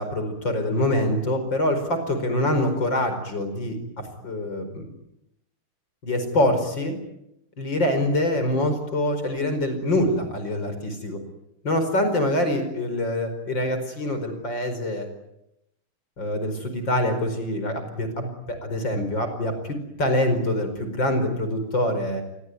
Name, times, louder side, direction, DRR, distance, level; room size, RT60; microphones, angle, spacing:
voice 1, 0.0-4.9 6.0-7.0 7.6-11.2 11.6-15.1 16.2-22.2, left 1 dB, 55° left, 8 dB, 5.4 m, -25 dB
27.0 x 22.5 x 9.4 m, 0.83 s
omnidirectional pair, 2.4 m